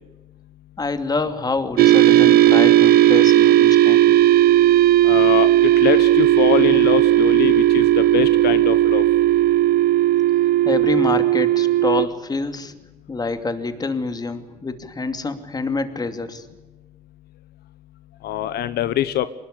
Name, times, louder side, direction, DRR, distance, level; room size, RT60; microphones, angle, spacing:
voice 1, 0.8-4.2 10.4-12.7 13.1-16.5, left 3 dB, 25° left, 9 dB, 2.7 m, -26 dB
sound 1, 1.8-12.1, right 14 dB, 65° right, 0.8 m, -15 dB
voice 2, 5.0-5.5 5.8-9.0 18.2-19.3, left 12 dB, 70° left, 13 dB, 1.1 m, -23 dB
24.5 x 20.5 x 8.5 m, 1.2 s
cardioid pair, 110°, 17 cm